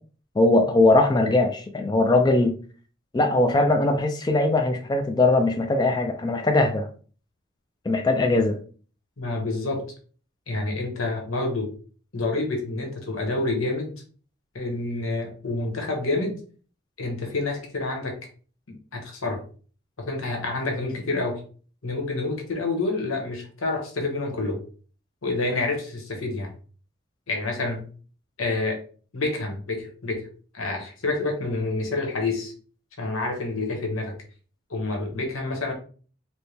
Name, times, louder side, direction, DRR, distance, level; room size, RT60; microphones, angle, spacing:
voice 1, 0.4-2.5 3.1-6.9 7.9-8.5, left 2 dB, 20° left, 6 dB, 0.3 m, -20 dB
voice 2, 9.2-9.9 10.5-11.7 12.1-13.9 14.5-16.4 17.0-18.2 18.7-19.4 20.1-21.4 21.8-24.6 25.2-26.5 27.3-27.8 28.4-28.8 29.1-30.2 30.5-32.5 33.0-34.1 34.7-35.7, left 2 dB, 90° left, 2 dB, 1.2 m, -28 dB
4.4 x 2.1 x 3.3 m, 0.41 s
head